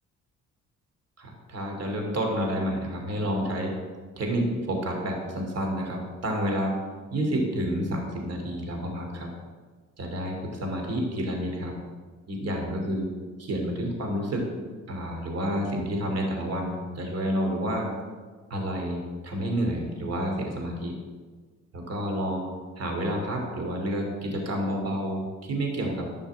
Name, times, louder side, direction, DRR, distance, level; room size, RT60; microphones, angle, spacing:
voice 1, 1.2-3.8 4.2-6.8 7.1-9.3 10.0-11.7 12.3-13.1 13.4-14.5 14.9-17.9 18.5-21.0 21.7-22.4 22.8-26.1, equal, 55° right, 2 dB, 3.1 m, -29 dB
12.0 x 6.3 x 7.4 m, 1.4 s
cardioid pair, 90°, 30 cm